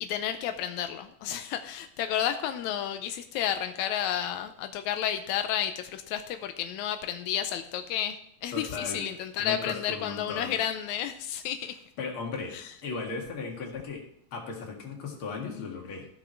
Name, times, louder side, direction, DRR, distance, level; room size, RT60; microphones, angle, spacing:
voice 1, 0.0-11.8 12.5-12.7, left 10 dB, 85° left, 8 dB, 1.6 m, -31 dB
voice 2, 8.5-9.0 9.4-10.6 12.0-12.6 12.8-14.0 14.3-16.1, left 4 dB, 45° left, 0 dB, 2.4 m, -36 dB
14.5 x 6.0 x 4.5 m, 0.71 s
omnidirectional pair, 4.0 m